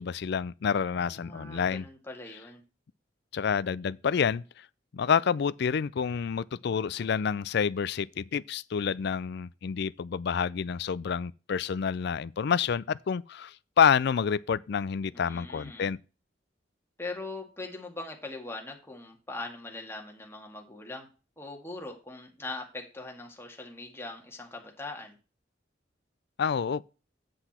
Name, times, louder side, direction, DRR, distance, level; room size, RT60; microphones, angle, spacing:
voice 1, 0.0-1.9 3.3-4.7 4.9-16.0 26.4-26.8, left 7 dB, 60° left, 0.4 m, -28 dB
voice 2, 0.9-2.6 15.1-15.9 17.0-21.1 21.4-25.2, left 2 dB, 15° left, 2.1 m, -41 dB
8.0 x 7.9 x 4.3 m
head